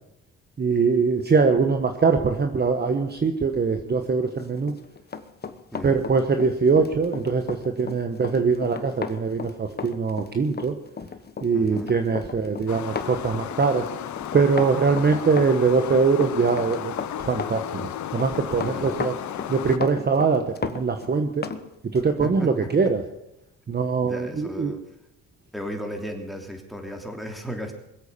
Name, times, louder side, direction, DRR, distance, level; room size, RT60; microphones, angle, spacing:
voice 1, 0.6-4.7 5.8-10.7 11.4-13.8 14.3-16.9 17.2-19.1 19.5-21.5 21.9-23.0 23.7-24.7, right 5 dB, 35° right, 6 dB, 1.3 m, -22 dB
Run, 4.6-21.6 22.0-22.1, left 5 dB, 30° left, 1.2 m, -35 dB
voice 2, 11.5-12.0 14.9-15.2 18.7-19.0 22.2-22.5 24.0-24.8 25.5-27.8, equal, ahead, 3 dB, 3.1 m, -35 dB
sound 1, 12.7-19.8, left 11 dB, 70° left, 1.0 m, -34 dB
21.5 x 8.2 x 6.9 m, 0.88 s
cardioid pair, 90°, 30 cm